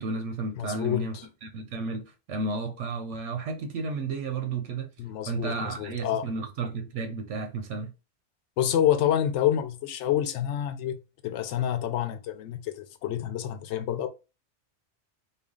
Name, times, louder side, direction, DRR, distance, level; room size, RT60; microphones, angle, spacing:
voice 1, 0.0-1.1 1.4-4.9 5.3-7.9, right 3 dB, 90° right, 1.0 m, -32 dB
voice 2, 0.6-1.2 5.0-6.2 8.6-14.1, left 11 dB, 80° left, 0.9 m, -28 dB
3.4 x 2.3 x 3.6 m
omnidirectional pair, 1.2 m